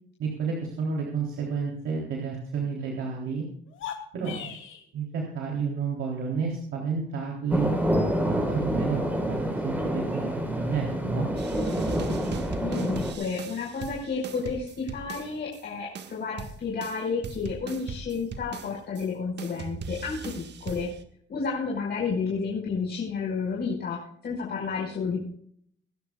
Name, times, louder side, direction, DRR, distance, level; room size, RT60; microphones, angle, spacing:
voice 1, 0.2-3.4 4.1-4.5 4.9-7.7 8.2-10.2 10.5-11.3, right 5 dB, 80° right, -2 dB, 3.5 m, -30 dB
sound 1, 3.7-4.9, left 8 dB, 80° left, 2.9 m, -38 dB
sound 2, 7.5-13.1, equal, 10° right, 4.2 m, -27 dB
sound 3, 11.4-15.6 16.0-19.1 19.4-21.0, right 5 dB, 60° right, 1.7 m, -39 dB
voice 2, 12.6-20.9 21.3-25.2, left 5 dB, 55° left, -3 dB, 5.2 m, -31 dB
25.0 x 12.0 x 2.4 m, 0.64 s
cardioid pair, 90°, 20 cm